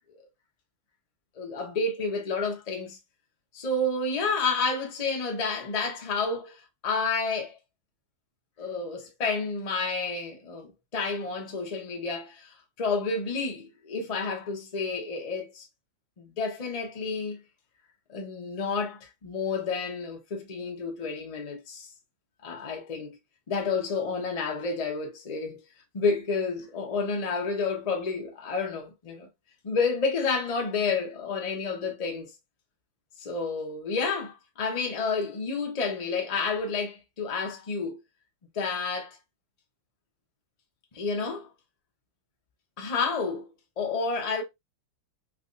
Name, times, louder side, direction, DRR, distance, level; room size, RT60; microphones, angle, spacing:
voice 1, 1.4-3.0 3.5-7.6 8.6-15.7 16.2-17.4 18.1-21.9 22.4-23.2 23.5-25.6 25.9-29.3 29.6-32.3 33.2-38.0 38.5-39.2 40.9-41.5 42.8-43.5 43.8-44.4, left 4 dB, 75° left, 0.3 m, -30 dB
3.4 x 3.2 x 2.5 m
omnidirectional pair, 2.2 m